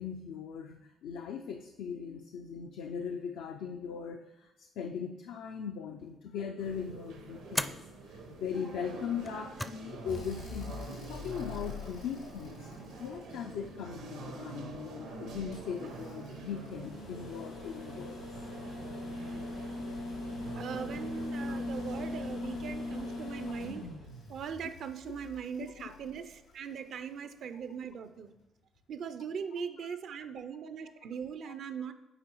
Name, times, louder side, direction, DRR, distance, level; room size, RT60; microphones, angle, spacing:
voice 1, 0.0-7.8 8.1-12.7 13.0-18.2 21.5-21.6 25.8-25.9 29.8-30.0 31.5-31.6, left 7 dB, 75° left, 4 dB, 0.4 m, -39 dB
sound 1, 6.0-6.4 7.5-7.9 9.1-9.9 10.1-10.2 11.3-11.9, equal, 5° left, 0.4 m, -38 dB
sound 2, 6.6-22.1, right 3 dB, 80° right, 1.0 m, -47 dB
sound 3, 10.1-14.2 15.5-26.7 28.3-28.4, left 2 dB, 90° left, 2.2 m, -41 dB
voice 2, 20.5-23.9 24.3-28.3 28.9-31.9, right 7 dB, 65° right, 11 dB, 0.5 m, -40 dB
8.8 x 4.6 x 3.0 m, 0.96 s
hypercardioid pair, 45°, 0 cm